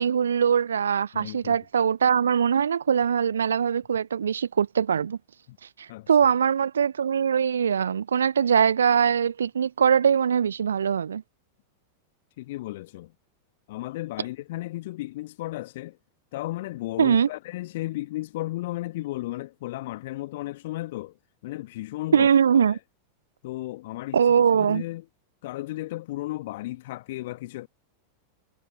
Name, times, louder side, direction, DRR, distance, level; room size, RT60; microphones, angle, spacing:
voice 1, 0.0-5.2 5.8-11.2 17.0-17.3 22.1-22.8 24.1-24.8, right 7 dB, 70° right, 0.7 m, -22 dB
voice 2, 1.1-1.6 5.5-5.6 5.9-6.1 12.4-13.1 13.7-16.0 16.3-21.1 21.4-22.8 23.4-25.0 25.4-27.7, left 17 dB, 55° left, 1.7 m, -34 dB
figure-of-eight pair, 90°, 0 cm